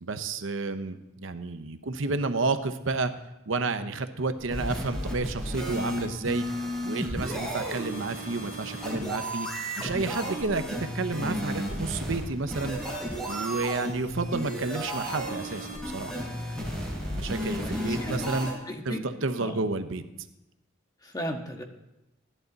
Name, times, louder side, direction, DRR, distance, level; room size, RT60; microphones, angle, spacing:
voice 1, 0.0-3.1 3.5-6.5 6.8-9.5 9.8-12.8 13.3-16.2 16.6-16.7 17.1-18.5 18.8-20.0, right 3 dB, 65° right, 10 dB, 0.8 m, -31 dB
sound 1, 4.4-18.5, equal, 5° left, 4.7 m, -33 dB
voice 2, 17.6-18.3 18.7-19.1 19.4-19.6 21.0-21.6, equal, 20° left, 3 dB, 1.4 m, -35 dB
16.5 x 11.0 x 4.0 m, 0.92 s
head